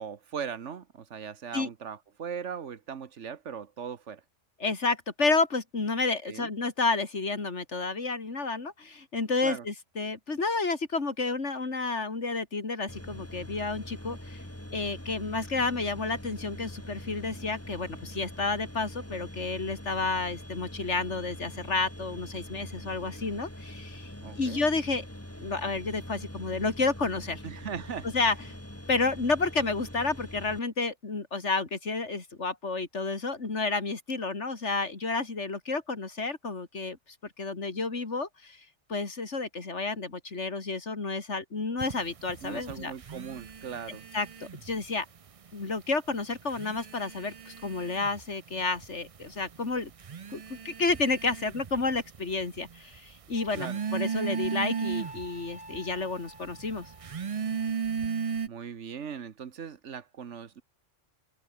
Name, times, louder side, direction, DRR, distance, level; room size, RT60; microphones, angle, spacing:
voice 1, 0.0-4.2 6.2-6.5 9.4-9.6 24.2-24.7 27.4-28.1 42.4-44.0 53.5-53.8 58.5-60.6, right 7 dB, 75° right, 1.5 m, -39 dB
voice 2, 4.6-14.4 14.7-25.0 25.4-27.4 28.1-28.4 28.9-37.0 37.4-42.9 44.1-45.0 45.5-49.9 50.3-56.9, left 3 dB, 70° left, 3.1 m, -30 dB
sound 1, 12.9-30.6, equal, 10° left, 4.2 m, -43 dB
sound 2, 41.8-44.9 45.2-45.9 46.4-58.5, right 6 dB, 40° right, 0.5 m, -36 dB
Wind instrument woodwind instrument, 53.3-57.7, right 1 dB, 5° right, 2.1 m, -48 dB
omnidirectional pair, 1.2 m